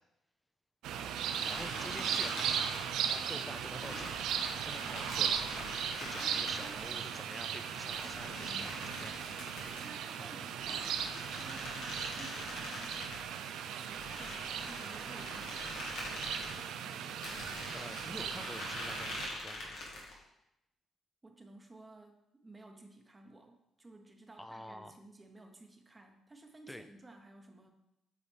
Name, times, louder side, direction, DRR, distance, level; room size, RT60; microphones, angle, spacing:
sound 1, 0.8-19.3, right 8 dB, 85° right, 0.4 m, -37 dB
sound 2, 1.2-3.1 3.8-7.1 7.8-9.9 10.5-13.2 13.9-16.6 17.2-20.2, left 2 dB, 85° left, 1.7 m, -44 dB
voice 1, 1.5-2.7 3.1-4.1 4.6-5.6 6.0-8.7 9.0-9.1 9.7-9.8 10.2-10.3 17.7-19.9 24.3-24.9 26.7-26.9, equal, 5° left, 8 dB, 0.5 m, -48 dB
voice 2, 4.8-5.2 6.2-6.8 8.4-8.9 9.5-11.0 11.4-13.1 13.7-17.1 21.2-27.7, right 2 dB, 20° right, 3 dB, 0.9 m, -55 dB
8.3 x 4.0 x 3.4 m, 0.86 s
cardioid pair, 90°, 0 cm